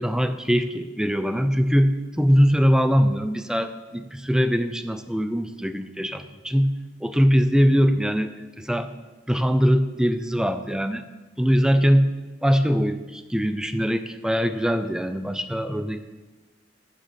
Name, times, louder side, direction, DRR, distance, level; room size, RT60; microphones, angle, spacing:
voice 1, 0.0-6.7 7.0-8.3 8.6-8.9 9.3-11.0 11.4-12.1 12.4-16.0, equal, 5° right, 10 dB, 0.5 m, -22 dB
9.0 x 7.0 x 6.9 m, 1.2 s
head